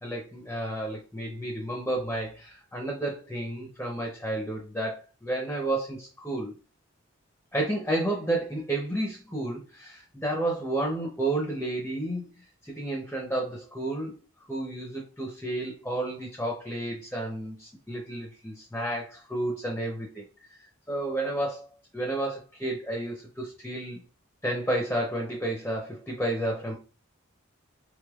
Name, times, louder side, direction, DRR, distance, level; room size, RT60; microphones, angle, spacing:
voice 1, 0.0-6.5 7.5-12.3 12.6-14.1 14.5-20.2 20.5-20.6 20.9-21.7 21.9-24.0 24.4-26.7, right 1 dB, 5° left, -1 dB, 0.6 m, -31 dB
3.4 x 3.3 x 2.3 m, 0.34 s
head